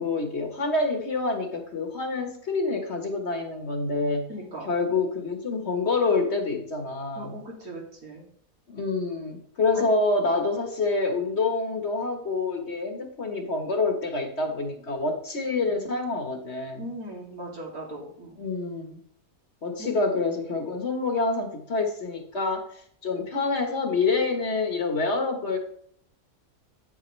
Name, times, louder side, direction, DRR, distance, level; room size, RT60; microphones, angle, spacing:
voice 1, 0.0-4.3 4.7-7.3 8.7-16.8 18.4-19.0 19.6-25.6, left 3 dB, 50° left, 4 dB, 1.6 m, -27 dB
voice 2, 4.3-4.7 7.2-8.2 9.7-9.9 10.3-10.4 16.8-18.3 19.8-19.9, right 1 dB, 80° right, -3 dB, 3.1 m, -38 dB
9.4 x 8.6 x 3.2 m, 0.62 s
omnidirectional pair, 1.5 m